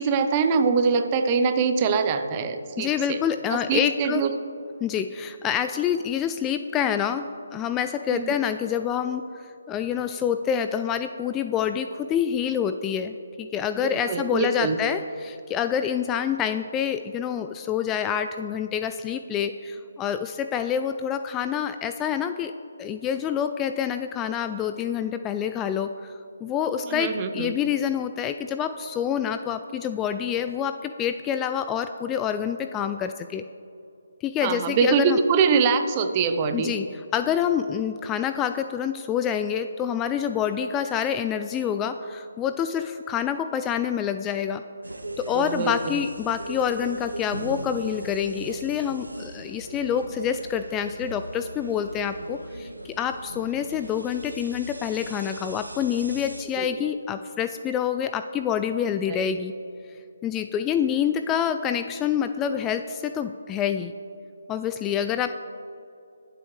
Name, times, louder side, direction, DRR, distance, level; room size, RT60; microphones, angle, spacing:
voice 1, 0.0-3.2 3.5-4.3 8.1-8.3 13.8-14.8 26.9-27.5 34.4-36.7 45.3-45.7 56.6-56.7 59.1-59.3, right 5 dB, 25° right, 8 dB, 0.8 m, -23 dB
voice 2, 2.8-4.3 4.8-22.5 22.8-33.4 34.2-35.2 36.5-44.6 45.2-59.5 60.2-63.9 64.5-65.3, left 8 dB, 15° left, 9 dB, 0.3 m, -27 dB
sound 1, 44.8-56.4, right 1 dB, 90° right, 1.0 m, -39 dB
22.0 x 7.7 x 3.3 m, 2.7 s
figure-of-eight pair, 150°, 0 cm